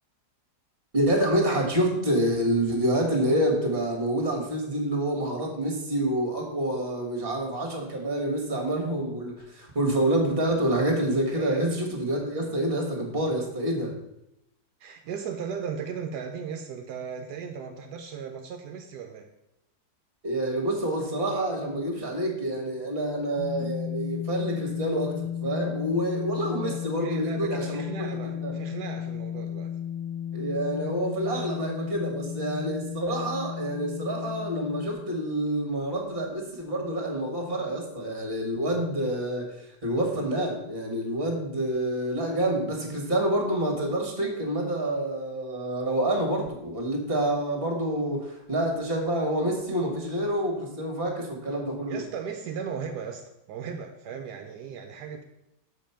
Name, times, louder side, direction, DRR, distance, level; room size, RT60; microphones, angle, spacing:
voice 1, 0.9-14.0 20.2-28.5 30.3-39.6 39.8-52.0, right 1 dB, 35° right, 2 dB, 1.8 m, -27 dB
voice 2, 11.3-11.7 14.8-19.3 26.6-29.8 51.9-55.2, right 6 dB, 80° right, 5 dB, 1.2 m, -37 dB
sound 1, 23.4-34.9, left 9 dB, 55° left, 0.9 m, -34 dB
6.5 x 5.2 x 5.7 m, 0.84 s
omnidirectional pair, 1.8 m